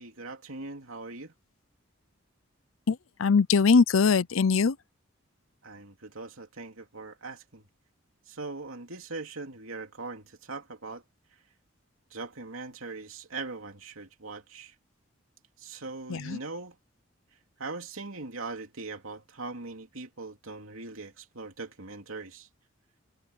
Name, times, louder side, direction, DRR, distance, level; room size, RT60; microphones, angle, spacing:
voice 1, 0.0-1.3 5.6-7.6 8.3-11.0 12.1-14.7 15.6-16.8 17.3-22.5, right 3 dB, 85° right, 2.8 m, -41 dB
voice 2, 2.9-4.8 16.1-16.4, left 5 dB, 75° left, 0.5 m, -22 dB
head